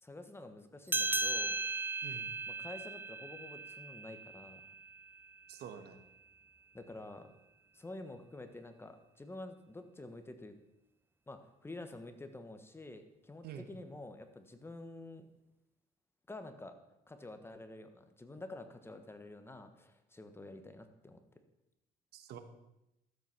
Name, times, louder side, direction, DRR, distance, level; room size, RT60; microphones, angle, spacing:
voice 1, 0.0-1.6 2.5-4.6 6.7-7.3 7.7-10.5 11.3-15.3 16.3-16.7 17.1-21.2, left 2 dB, 15° left, 8 dB, 1.2 m, -49 dB
sound 1, 0.9-5.8, right 2 dB, 10° right, 0.6 m, -37 dB
voice 2, 2.0-2.3 5.5-6.0 13.4-13.7 22.1-22.4, right 8 dB, 70° right, 9 dB, 1.3 m, -47 dB
13.0 x 7.9 x 5.9 m, 0.92 s
cardioid pair, 110°, 17 cm